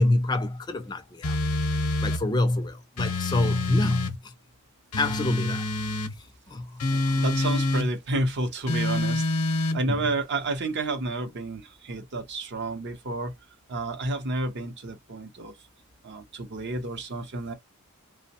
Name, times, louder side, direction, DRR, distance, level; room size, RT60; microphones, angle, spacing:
voice 1, 0.0-1.4 2.0-4.3 5.0-5.6 6.2-7.2 9.9-10.1, left 2 dB, 20° left, 0.3 m, -27 dB
sound 1, 1.2-2.2 3.0-4.2 4.9-6.1 6.8-7.9 8.7-9.8, left 2 dB, 85° left, 0.7 m, -27 dB
voice 2, 6.9-9.3 9.7-13.3 13.7-15.5 16.0-17.5, right 2 dB, 50° right, 0.6 m, -30 dB
2.9 x 2.0 x 2.7 m
head